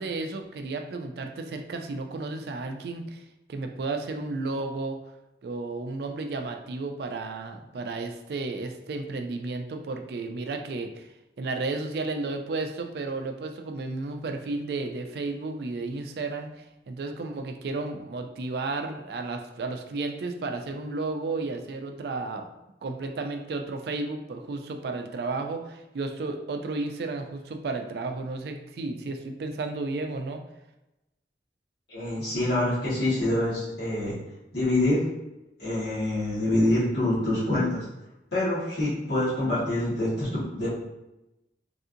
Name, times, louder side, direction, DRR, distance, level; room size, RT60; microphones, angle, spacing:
voice 1, 0.0-5.0 5.4-11.1 11.4-22.5 22.8-30.4, right 3 dB, 65° right, 5 dB, 0.3 m, -33 dB
voice 2, 31.9-34.1 34.5-35.1 35.6-37.8 38.3-40.7, left 1 dB, 65° left, -11 dB, 1.5 m, -26 dB
3.3 x 2.7 x 2.5 m, 0.95 s
head